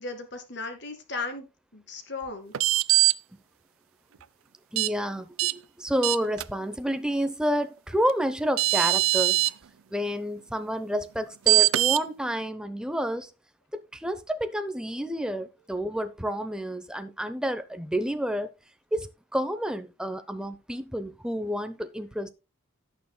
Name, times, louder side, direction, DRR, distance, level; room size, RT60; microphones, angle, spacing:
voice 1, 0.0-2.5, left 3 dB, 55° left, 2.2 m, -36 dB
sound 1, 2.5-3.1 4.8-4.9 5.4-5.5 6.0-6.4 8.1-8.2 8.6-9.5 11.5-12.0, right 18 dB, 90° right, 0.4 m, -21 dB
voice 2, 4.7-9.4 9.9-13.3 13.7-18.5 18.9-22.3, equal, 5° right, 0.7 m, -29 dB
17.0 x 6.8 x 2.2 m
head